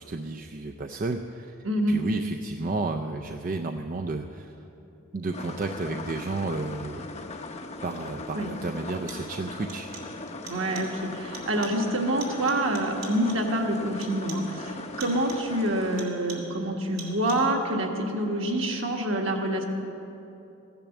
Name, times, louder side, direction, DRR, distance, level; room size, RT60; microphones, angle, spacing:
voice 1, 0.0-4.6 5.1-7.1 7.8-9.9, right 3 dB, 40° right, 4 dB, 0.4 m, -32 dB
voice 2, 1.6-2.0 8.3-8.5 10.5-19.6, right 1 dB, 60° right, 2 dB, 1.5 m, -27 dB
sound 1, 5.3-16.0, left 2 dB, 30° left, 0.7 m, -39 dB
sound 2, 7.8-7.9 8.8-9.4 9.7-10.2 10.5-11.0 11.3-11.9 12.2-13.6 14.0-14.6 15.0-15.6 16.0-16.6 17.0-17.6, right 5 dB, 75° right, 2.4 m, -44 dB
15.5 x 10.5 x 7.1 m, 2.9 s
head